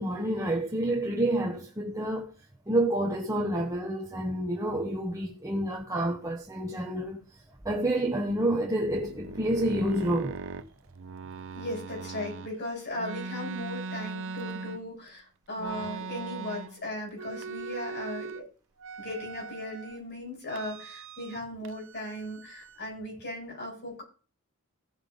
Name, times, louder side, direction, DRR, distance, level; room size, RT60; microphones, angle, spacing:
voice 1, 0.0-2.3 2.7-7.2 7.6-10.3, right 1 dB, 15° right, 1.2 m, -28 dB
sound 1, 8.9-12.5 13.0-15.1 15.6-16.8 17.1-18.4 18.8-20.0 20.5-21.4 21.7-22.8, right 4 dB, 60° right, 0.7 m, -40 dB
voice 2, 11.5-18.5 19.0-24.0, left 1 dB, 50° left, 7.4 m, -37 dB
16.0 x 5.9 x 5.3 m
head